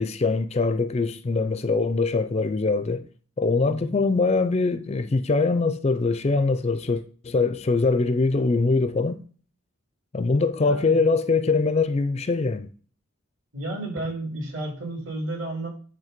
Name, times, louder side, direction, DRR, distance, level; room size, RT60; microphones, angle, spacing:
voice 1, 0.0-3.1 3.4-9.2 10.1-12.7, left 3 dB, 30° left, 0.4 m, -23 dB
voice 2, 3.6-4.0 10.5-11.0 13.5-15.7, right 2 dB, 60° right, 2.5 m, -32 dB
9.3 x 3.2 x 5.0 m
head